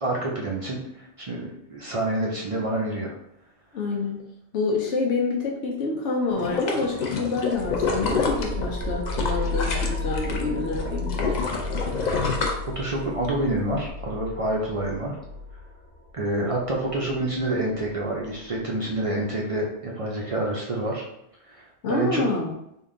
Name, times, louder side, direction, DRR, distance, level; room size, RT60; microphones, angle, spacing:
voice 1, 0.0-3.1 12.8-15.2 16.1-21.0 21.5-22.2, right 1 dB, 45° right, -2 dB, 0.4 m, -28 dB
voice 2, 3.7-4.2 4.5-11.3 21.8-22.5, left 3 dB, 90° left, -1 dB, 1.0 m, -27 dB
sound 1, 6.3-10.4 10.7-13.3 13.7-13.8, left 4 dB, 50° left, 0.6 m, -28 dB
sound 2, 7.5-18.6, left 2 dB, 90° right, 1.2 m, -33 dB
3.6 x 2.3 x 3.7 m, 0.77 s
omnidirectional pair, 1.2 m